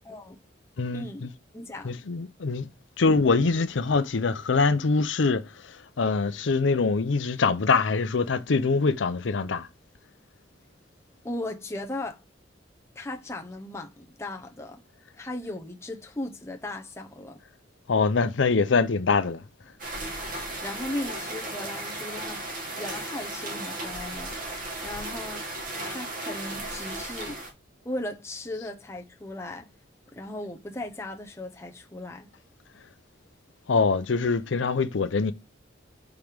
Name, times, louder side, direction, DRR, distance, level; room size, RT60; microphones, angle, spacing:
voice 1, 0.1-0.4 0.9-1.3 1.5-1.9 11.2-12.2 13.0-14.8 15.2-17.4 20.3-25.5 25.9-27.4 27.8-29.7 30.1-32.3, left 1 dB, 15° left, 0.8 m, -37 dB
voice 2, 0.8-1.3 1.8-2.7 3.0-5.4 6.0-9.7 17.9-19.4 33.7-35.3, left 4 dB, 80° left, 0.6 m, -24 dB
sound 1, 19.8-27.5, right 2 dB, 45° right, 1.7 m, -35 dB
5.3 x 4.6 x 5.0 m
head